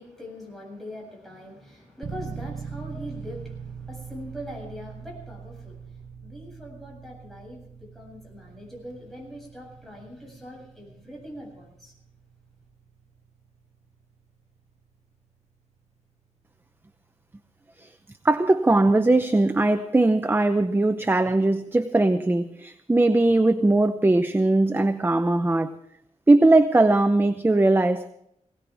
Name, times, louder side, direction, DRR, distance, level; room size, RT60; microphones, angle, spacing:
voice 1, 0.0-11.9, equal, ahead, 7.6 m, -42 dB
sound 1, 2.0-18.8, right 6 dB, 60° right, 1.3 m, -43 dB
voice 2, 18.2-25.8 26.3-28.1, right 2 dB, 15° right, 0.7 m, -20 dB
21.0 x 17.5 x 3.5 m
wide cardioid pair, 135°, 13 cm